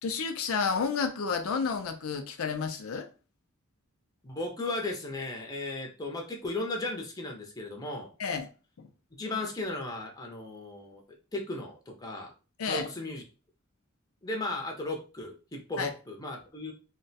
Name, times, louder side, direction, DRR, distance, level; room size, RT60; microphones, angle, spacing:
voice 1, 0.0-3.1 8.2-8.5 8.8-8.9 12.6-12.9 15.8-15.9, left 5 dB, 80° left, 0.5 m, -31 dB
voice 2, 4.2-8.1 9.2-11.0 11.3-12.3 12.6-13.2 14.2-16.7, left 2 dB, 20° left, 0.6 m, -36 dB
2.4 x 2.2 x 3.9 m
head